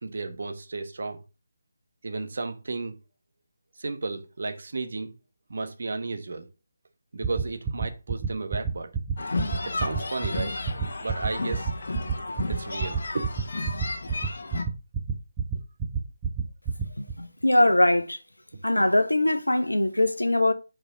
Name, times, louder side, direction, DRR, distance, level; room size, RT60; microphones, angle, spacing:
voice 1, 0.0-1.2 2.0-2.9 3.8-5.1 5.5-6.5 7.1-8.9 9.6-10.6 11.0-11.7 12.5-13.3 18.5-18.6, right 3 dB, 55° right, 1.1 m, -33 dB
sound 1, 7.2-17.1, right 6 dB, 15° right, 0.8 m, -27 dB
sound 2, 9.2-14.6, left 3 dB, 55° left, 1.4 m, -33 dB
voice 2, 17.0-18.2 18.6-20.5, left 1 dB, 90° left, 0.9 m, -22 dB
6.5 x 4.7 x 3.8 m
figure-of-eight pair, 155°, 0 cm